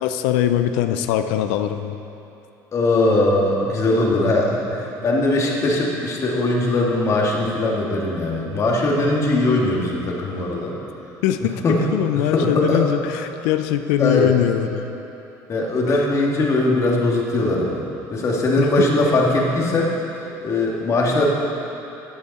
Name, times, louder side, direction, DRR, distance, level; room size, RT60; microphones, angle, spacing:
voice 1, 0.0-2.0 11.2-11.5 11.9-14.9 15.9-16.0 18.6-18.9, left 11 dB, 90° left, 9 dB, 0.5 m, -21 dB
voice 2, 2.7-10.8 11.6-11.9 12.1-12.8 14.0-14.3 15.5-17.8 18.1-21.3, left 2 dB, 40° left, -2 dB, 2.2 m, -20 dB
14.5 x 8.5 x 4.2 m, 2.9 s
supercardioid pair, 105°, 8 cm